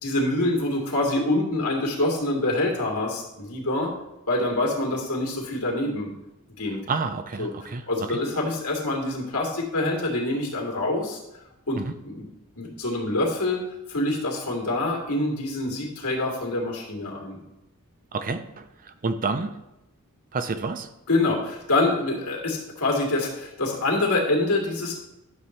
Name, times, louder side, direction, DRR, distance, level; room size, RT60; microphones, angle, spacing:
voice 1, 0.0-3.9 4.3-6.1 6.6-6.8 7.4-7.5 7.9-11.2 11.7-11.8 12.0-12.3 12.6-13.6 13.9-17.4 21.1-25.0, left 2 dB, 75° left, -2 dB, 2.5 m, -25 dB
voice 2, 6.9-8.1 11.8-11.9 18.1-19.5 20.3-20.9, right 4 dB, 40° right, 10 dB, 0.6 m, -29 dB
11.5 x 7.2 x 3.2 m, 0.91 s
head